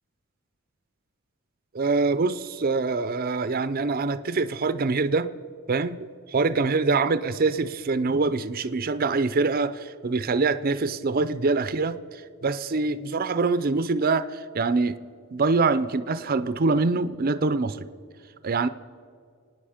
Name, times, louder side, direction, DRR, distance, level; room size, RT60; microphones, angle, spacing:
voice 1, 1.7-5.3 5.7-15.0 15.3-17.9 18.4-18.7, right 3 dB, 40° right, 12 dB, 0.5 m, -24 dB
27.5 x 9.5 x 5.0 m, 2.2 s
head